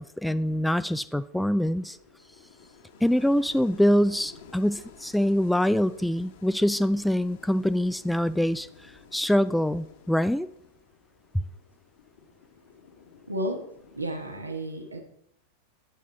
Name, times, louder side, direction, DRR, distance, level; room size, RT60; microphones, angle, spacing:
voice 1, 0.0-2.0 3.0-8.7 9.1-10.5, equal, ahead, 14 dB, 0.3 m, -24 dB
sound 1, 1.7-14.4, left 5 dB, 55° left, 1.9 m, -53 dB
voice 2, 13.3-13.7 13.9-15.0, right 1 dB, 80° right, 4 dB, 1.2 m, -32 dB
9.8 x 8.2 x 4.1 m, 0.74 s
figure-of-eight pair, 90°, 0 cm